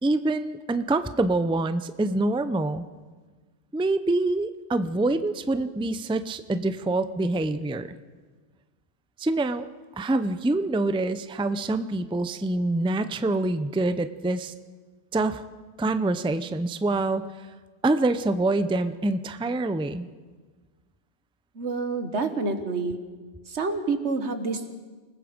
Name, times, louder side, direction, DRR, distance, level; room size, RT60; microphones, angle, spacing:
voice 1, 0.0-2.9 3.7-7.9 9.2-9.7 10.0-14.5 15.1-15.4 15.8-17.3 17.8-20.1, right 2 dB, 5° right, 11 dB, 0.5 m, -25 dB
voice 2, 21.6-23.0 23.5-24.7, right 3 dB, 80° right, 8 dB, 1.9 m, -28 dB
28.5 x 19.5 x 5.2 m, 1.4 s
omnidirectional pair, 1.2 m